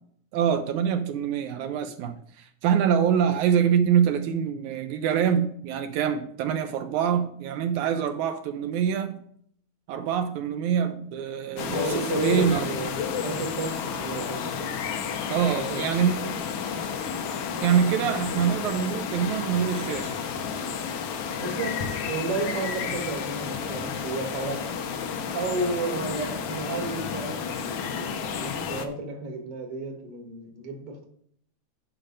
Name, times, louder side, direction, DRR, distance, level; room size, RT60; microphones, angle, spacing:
voice 1, 0.3-9.2 9.9-12.7 15.3-16.2 17.6-20.2, right 8 dB, 80° right, 2.0 m, -25 dB
sound 1, 11.6-28.9, left 6 dB, 70° left, 1.4 m, -31 dB
voice 2, 11.7-14.8 15.6-15.9 16.2-16.9 21.4-24.7 25.3-31.0, right 3 dB, 40° right, 1.2 m, -33 dB
9.1 x 5.5 x 5.2 m
omnidirectional pair, 3.6 m